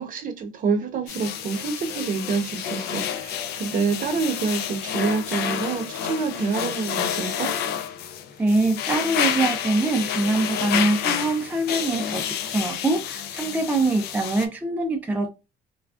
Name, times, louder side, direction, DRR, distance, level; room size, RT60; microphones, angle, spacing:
voice 1, 0.0-7.5, right 5 dB, 55° right, 0.8 m, -27 dB
sound 1, 1.1-14.5, left 9 dB, 75° left, 0.4 m, -29 dB
voice 2, 8.4-15.3, right 2 dB, 10° right, 0.4 m, -24 dB
3.5 x 2.3 x 2.3 m
cardioid pair, 110°, 17 cm